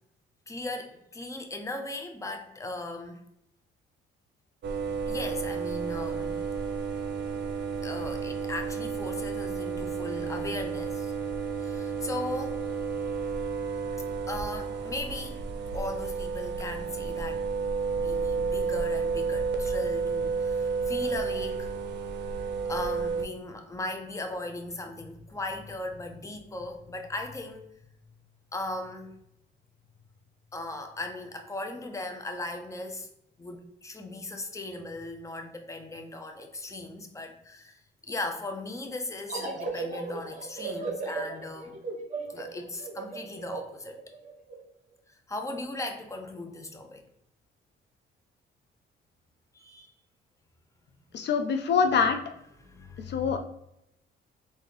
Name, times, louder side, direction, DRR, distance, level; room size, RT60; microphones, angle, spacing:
voice 1, 0.5-3.2 5.1-6.4 7.8-11.1 11.6-12.6 13.9-15.4 15.7-17.5 18.0-21.7 22.7-27.7 28.5-29.2 30.5-33.1 33.4-37.8 38.1-41.8 42.3-44.0 45.3-47.0 49.5-49.9 52.6-53.4, left 2 dB, 15° left, 4 dB, 0.6 m, -38 dB
sound 1, 4.6-23.3, right 5 dB, 60° right, 0.6 m, -31 dB
sound 2, 39.3-44.6, right 3 dB, 40° right, 1.3 m, -36 dB
voice 2, 51.1-52.2 53.1-53.4, left 6 dB, 60° left, 6 dB, 0.5 m, -24 dB
3.9 x 2.7 x 3.0 m, 0.80 s
cardioid pair, 90°, 20 cm